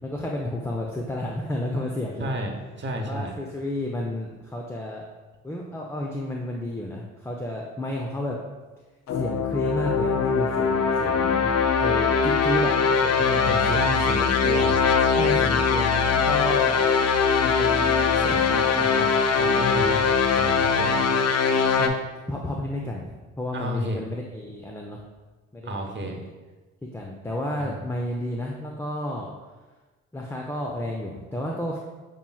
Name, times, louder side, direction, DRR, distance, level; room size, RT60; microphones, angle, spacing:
voice 1, 0.0-2.4 3.1-5.0 5.4-8.4 9.1-14.1 15.2-16.9 17.4-18.3 21.8-21.9 22.3-25.0 25.5-26.2 26.8-29.3 30.1-31.8, left 1 dB, 10° left, -1 dB, 0.6 m, -31 dB
voice 2, 2.2-3.4 13.4-14.9 18.1-19.1 19.3-20.1 20.4-21.1 23.5-24.0 25.6-26.2 27.6-27.9, right 1 dB, 35° right, 3 dB, 0.9 m, -32 dB
sound 1, 9.1-21.9, left 5 dB, 50° left, 0.5 m, -21 dB
7.0 x 3.0 x 2.3 m, 1.2 s
supercardioid pair, 55°, 33 cm